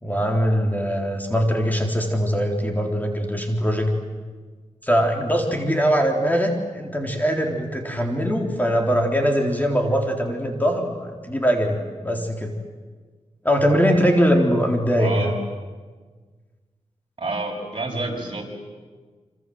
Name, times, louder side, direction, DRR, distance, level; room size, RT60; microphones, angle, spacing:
voice 1, 0.0-3.9 4.8-11.8 12.0-12.6 13.4-15.4, equal, 15° left, 2 dB, 3.8 m, -21 dB
voice 2, 15.0-15.3 17.2-18.4, right 2 dB, 40° right, -1 dB, 7.4 m, -28 dB
28.5 x 26.0 x 7.9 m, 1.4 s
wide cardioid pair, 75°, 13 cm